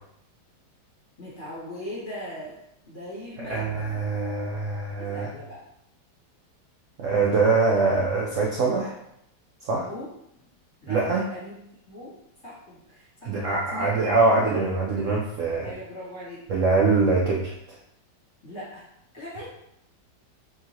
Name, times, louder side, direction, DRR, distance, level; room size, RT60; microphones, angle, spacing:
voice 1, 1.2-3.9 5.0-5.6 9.7-10.1 10.8-11.5 11.9-12.1 12.4-13.9 15.6-16.4 18.4-18.9 19.1-19.5, left 1 dB, 30° left, -8 dB, 1.5 m, -40 dB
voice 2, 3.5-5.3 7.0-8.9 9.6-9.9 10.9-11.2 13.2-15.7 16.5-17.5, right 3 dB, 80° right, -4 dB, 0.6 m, -23 dB
4.6 x 2.9 x 2.8 m, 0.77 s
omnidirectional pair, 2.1 m